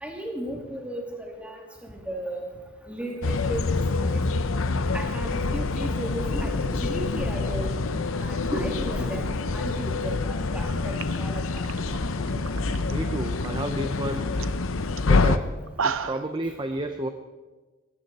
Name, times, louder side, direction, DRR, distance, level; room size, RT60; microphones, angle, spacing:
voice 1, 0.0-2.5 2.9-4.2 4.9-7.7 8.1-9.3 9.5-11.6, equal, 5° right, 0 dB, 2.6 m, -35 dB
sound 1, 3.2-15.4, left 3 dB, 65° left, 0.7 m, -26 dB
sound 2, 10.6-10.7 10.9-12.9 13.2-13.7 14.0-14.1 14.4-14.6 15.0-15.1 15.5-16.3, right 6 dB, 65° right, 0.6 m, -33 dB
voice 2, 12.9-14.3 15.0-15.5 15.8-17.1, right 1 dB, 20° right, 7 dB, 0.7 m, -31 dB
18.0 x 16.0 x 4.2 m, 1.3 s
head